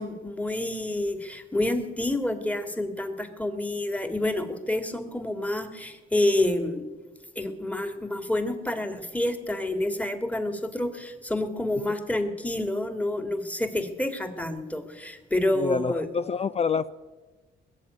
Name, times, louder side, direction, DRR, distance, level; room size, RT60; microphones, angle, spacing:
voice 1, 0.0-6.9 7.4-16.1, left 1 dB, 5° left, 8 dB, 1.9 m, -28 dB
voice 2, 15.6-16.9, left 6 dB, 30° left, 14 dB, 0.4 m, -27 dB
20.5 x 7.4 x 9.5 m, 1.3 s
cardioid pair, 90°, 20 cm